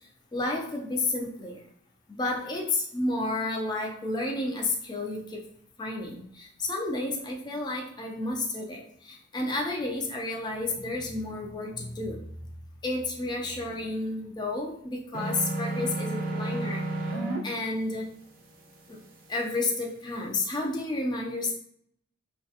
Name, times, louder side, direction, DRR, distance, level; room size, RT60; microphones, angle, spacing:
voice 1, 0.3-1.6 2.1-5.4 5.8-12.2 12.8-16.8 17.4-18.1 18.9-19.0 19.3-21.5, left 2 dB, 20° left, 0 dB, 0.3 m, -31 dB
sound 1, 15.1-17.4, right 2 dB, 45° right, 0.4 m, -31 dB
2.3 x 2.1 x 2.7 m, 0.67 s
head